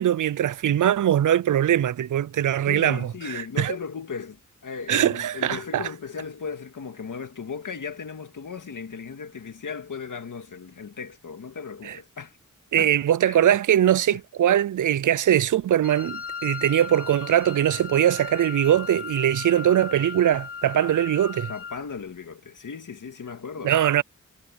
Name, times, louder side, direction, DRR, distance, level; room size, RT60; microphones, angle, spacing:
voice 1, 0.0-3.1 3.6-3.8 4.9-5.9 11.8-12.0 12.7-21.5 23.6-24.0, right 11 dB, 80° right, 0.5 m, -21 dB
voice 2, 2.6-12.4 12.8-12.9 13.2-13.5 14.1-14.2 21.5-23.8, left 6 dB, 85° left, 2.1 m, -36 dB
Wind instrument woodwind instrument, 15.8-21.9, left 6 dB, 45° left, 6.1 m, -37 dB
wide cardioid pair, 125°, 31 cm